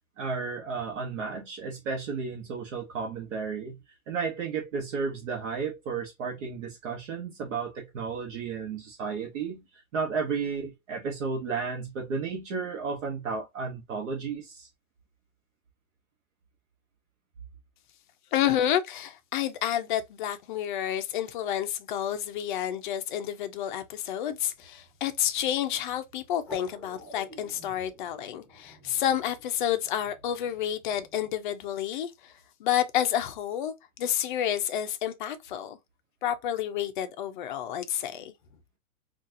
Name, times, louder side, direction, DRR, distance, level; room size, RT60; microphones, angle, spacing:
voice 1, 0.2-3.8 4.1-14.7, right 5 dB, 60° right, 1.1 m, -33 dB
voice 2, 18.3-32.3 32.6-33.7 34.0-35.8 36.2-38.3, left 11 dB, 35° left, 0.5 m, -30 dB
sound 1, 24.3-31.3, right 1 dB, 5° left, 0.8 m, -51 dB
3.9 x 2.4 x 2.6 m
supercardioid pair, 160°, 43 cm